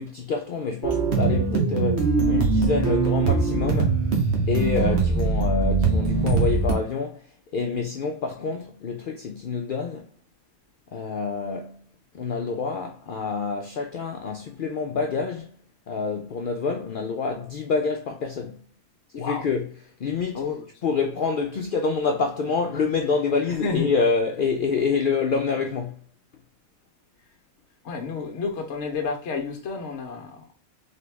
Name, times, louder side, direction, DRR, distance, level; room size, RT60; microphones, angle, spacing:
voice 1, 0.0-4.0 4.5-7.2 7.5-10.1 10.9-11.8 12.1-15.6 15.9-18.6 19.2-19.7 20.0-20.4 20.8-26.0, left 4 dB, 75° left, 0.4 m, -27 dB
sound 1, 0.8-6.7, right 4 dB, 50° right, 1.3 m, -22 dB
voice 2, 19.1-19.5 20.3-20.7 23.5-23.9 27.8-30.5, left 4 dB, 55° left, 1.1 m, -30 dB
3.9 x 3.6 x 3.4 m
omnidirectional pair, 1.5 m